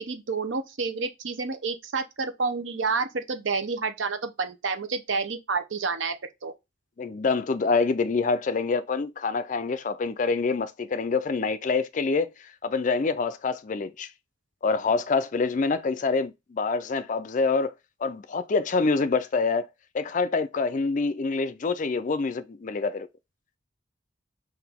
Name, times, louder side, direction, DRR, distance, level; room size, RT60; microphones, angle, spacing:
voice 1, 0.0-6.2 6.4-6.5, right 4 dB, 75° right, 0.7 m, -29 dB
voice 2, 7.0-12.3 12.6-14.1 14.6-17.7 18.0-19.7 19.9-23.1, left 4 dB, 40° left, 0.4 m, -26 dB
5.9 x 2.6 x 3.5 m
head